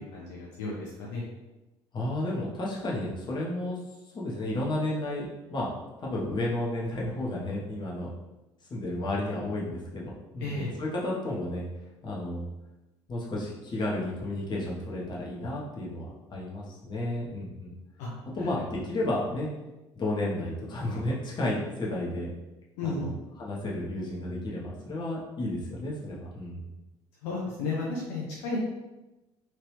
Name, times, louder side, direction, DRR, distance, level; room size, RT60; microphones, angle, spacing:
voice 1, 0.1-1.2 10.4-10.7 18.0-18.1 22.8-23.1 27.2-28.6, left 3 dB, 60° left, -4 dB, 0.6 m, -33 dB
voice 2, 1.9-3.8 4.1-5.7 6.0-8.1 8.7-11.7 12.0-12.4 13.1-17.7 18.3-19.5 19.9-22.3 22.8-23.1 23.4-26.7, left 1 dB, 30° left, -4 dB, 0.9 m, -32 dB
3.0 x 2.9 x 3.1 m, 1.0 s
figure-of-eight pair, 55°, 15 cm